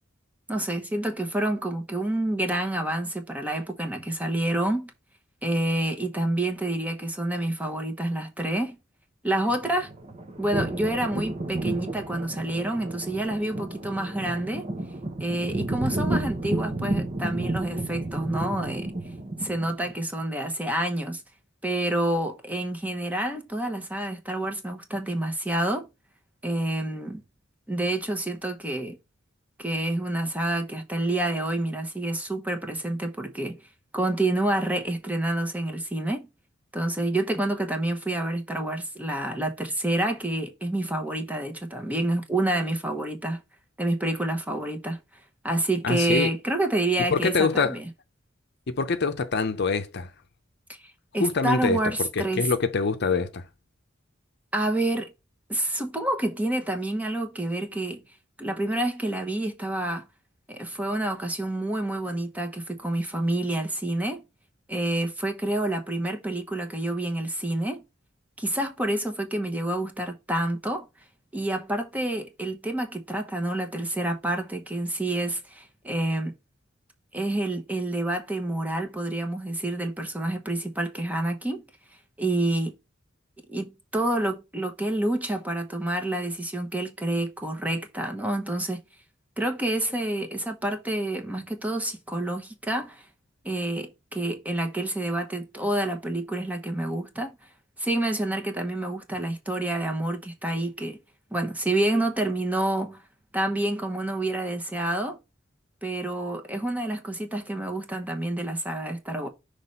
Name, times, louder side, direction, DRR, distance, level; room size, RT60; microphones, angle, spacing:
voice 1, 0.5-4.9 5.4-8.8 9.2-9.9 10.4-14.7 15.2-18.9 19.4-21.2 21.6-25.9 26.4-27.2 27.7-29.0 29.6-33.6 33.9-36.3 36.7-43.4 43.8-45.0 45.4-47.9 50.7-50.8 51.1-52.5 54.5-55.1 55.5-58.0 58.4-60.1 60.5-64.2 64.7-67.8 68.4-70.9 71.3-76.3 77.1-81.6 82.2-82.8 83.5-88.8 89.4-93.0 93.4-97.3 97.8-101.0 101.3-103.0 103.3-105.2 105.8-109.3, right 1 dB, 10° right, 1.0 m, -28 dB
sound 1, 9.5-19.9, right 2 dB, 35° right, 0.9 m, -31 dB
voice 2, 45.8-46.3 47.1-47.8 48.7-50.1 51.2-51.8 52.4-53.4, left 4 dB, 55° left, 0.7 m, -24 dB
5.9 x 3.2 x 5.3 m
head